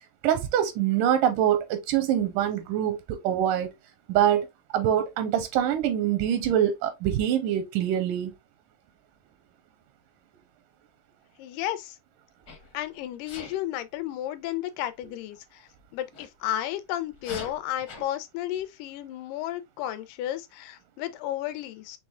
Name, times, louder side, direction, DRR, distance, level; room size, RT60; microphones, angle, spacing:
voice 1, 0.2-3.7 4.1-4.5 4.7-8.3, right 10 dB, 85° right, 2.3 m, -24 dB
voice 2, 11.4-12.0 12.7-22.0, left 12 dB, 85° left, 2.2 m, -33 dB
Sneeze, 12.5-12.7 13.3-13.6 16.1-16.3 17.1-18.0, left 3 dB, 50° left, 1.1 m, -41 dB
6.1 x 3.2 x 2.4 m
omnidirectional pair, 3.7 m